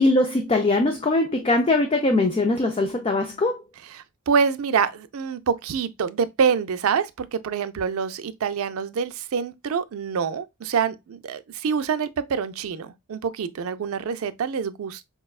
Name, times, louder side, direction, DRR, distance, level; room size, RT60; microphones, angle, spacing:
voice 1, 0.0-3.6, left 2 dB, 25° left, 0.4 m, -21 dB
voice 2, 3.9-15.0, right 6 dB, 75° right, 0.4 m, -26 dB
4.7 x 2.2 x 2.3 m
head